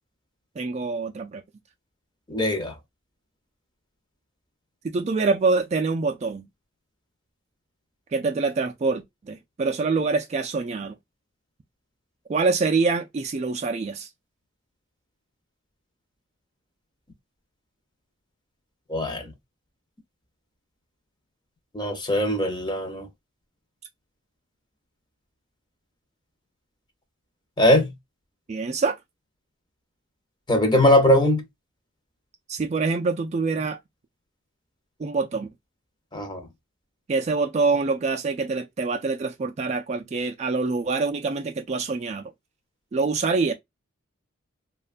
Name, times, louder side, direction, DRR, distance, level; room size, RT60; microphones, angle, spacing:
voice 1, 0.6-1.4 4.8-6.5 8.1-11.0 12.3-14.1 28.5-29.0 32.5-33.8 35.0-35.5 37.1-42.3 42.9-43.5, right 4 dB, 35° right, 0.3 m, -25 dB
voice 2, 2.3-2.7 18.9-19.3 21.7-23.1 27.6-27.9 30.5-31.4 36.1-36.4, left 1 dB, 20° left, 0.6 m, -20 dB
3.0 x 2.2 x 2.4 m
head